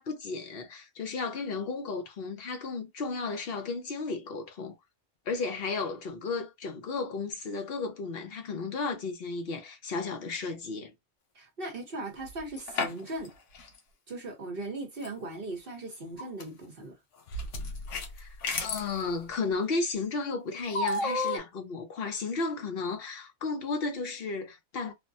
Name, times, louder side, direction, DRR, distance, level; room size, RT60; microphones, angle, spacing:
voice 1, 0.0-4.8 5.3-10.9 18.2-24.9, left 4 dB, 55° left, 0.9 m, -34 dB
voice 2, 11.3-13.3 14.1-17.0, right 2 dB, 50° right, 1.1 m, -38 dB
sound 1, 12.3-13.3 13.5-13.7 15.0-15.1 15.9-16.4 17.3-18.9 20.7-21.4, left 2 dB, 80° left, 1.1 m, -32 dB
3.3 x 2.1 x 2.6 m
omnidirectional pair, 1.3 m